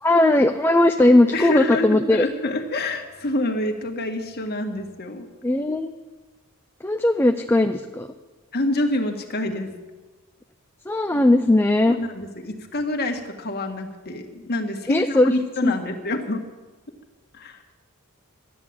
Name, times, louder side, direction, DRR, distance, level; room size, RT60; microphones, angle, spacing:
voice 1, 0.0-2.2 5.4-5.9 6.8-8.1 10.9-11.9 14.9-15.3 15.6-15.7, left 1 dB, 10° left, 5 dB, 0.5 m, -18 dB
voice 2, 1.3-5.3 8.5-9.7 11.9-16.4 17.3-17.6, left 2 dB, 45° left, 4 dB, 1.6 m, -27 dB
12.5 x 10.0 x 8.7 m, 1.2 s
head